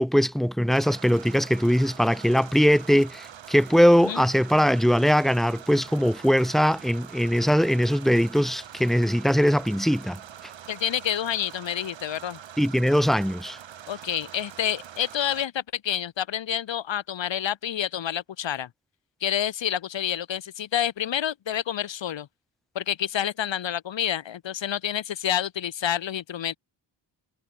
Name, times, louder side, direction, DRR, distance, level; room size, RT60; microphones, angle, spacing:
voice 1, 0.0-10.2 12.6-13.6, equal, ahead, 1.5 m, -21 dB
sound 1, 0.7-15.5, right 10 dB, 80° right, 6.3 m, -44 dB
voice 2, 10.7-12.4 13.9-18.7 19.2-22.3 22.7-26.6, left 10 dB, 80° left, 3.6 m, -28 dB
wide cardioid pair, 130°, 44 cm